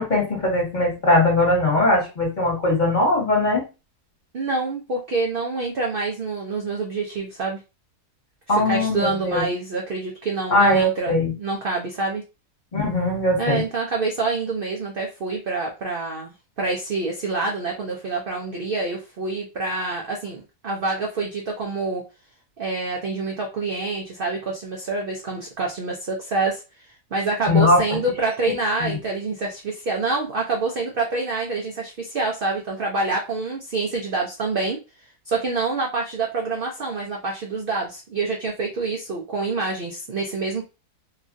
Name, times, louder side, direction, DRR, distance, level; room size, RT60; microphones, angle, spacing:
voice 1, 0.0-3.7 8.5-9.4 10.5-11.3 12.7-13.6 27.5-27.8 28.4-28.5 28.8-29.0, left 1 dB, 30° left, -2 dB, 1.2 m, -20 dB
voice 2, 4.3-7.6 8.5-12.2 13.4-16.3 16.6-22.0 22.6-34.8 35.3-40.6, right 3 dB, 70° right, 0 dB, 0.5 m, -26 dB
2.9 x 2.4 x 2.5 m, 0.29 s
omnidirectional pair, 1.6 m